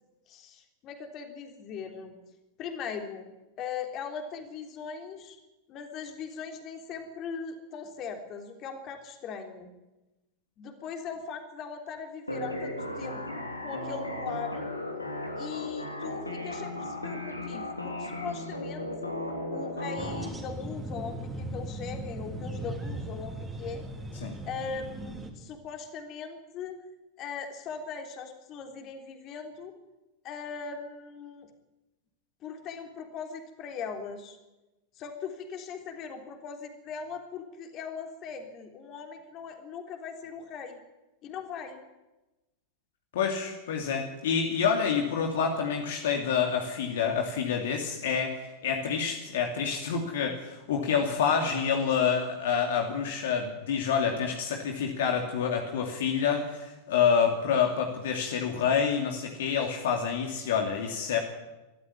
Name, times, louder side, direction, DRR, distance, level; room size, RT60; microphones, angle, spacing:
voice 1, 0.3-2.2 2.6-3.2 3.6-5.4 5.7-9.7 10.6-14.7 15.4-19.1 19.5-23.8 24.5-26.8 27.2-29.7 30.2-31.5 32.4-34.4 35.0-40.8 41.2-41.8, left 6 dB, 35° left, 5 dB, 3.5 m, -39 dB
sound 1, 12.3-20.3, left 1 dB, 85° left, 3.2 m, -35 dB
sound 2, 20.0-25.3, right 1 dB, 10° right, 3.4 m, -38 dB
voice 2, 43.1-61.2, left 6 dB, 55° left, 3 dB, 2.6 m, -27 dB
23.5 x 13.5 x 9.9 m, 1.1 s
figure-of-eight pair, 90°, 0 cm